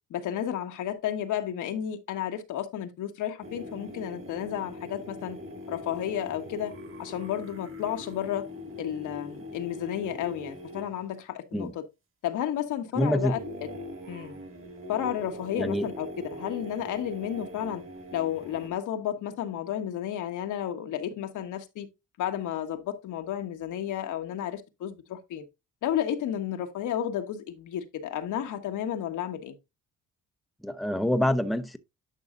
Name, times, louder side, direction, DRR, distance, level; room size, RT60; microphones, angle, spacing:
voice 1, 0.1-5.4 5.7-6.7 7.0-8.4 8.8-11.8 12.2-13.4 14.1-14.4 14.9-17.8 18.1-21.9 22.2-25.4 25.8-29.5, left 10 dB, 80° left, 1.3 m, -32 dB
sound 1, 3.4-11.1 13.2-18.7, left 1 dB, 45° right, 2.2 m, -42 dB
voice 2, 13.0-13.3 15.6-15.9 30.6-31.8, equal, ahead, 0.6 m, -26 dB
10.5 x 5.5 x 2.5 m
cardioid pair, 90°, 30 cm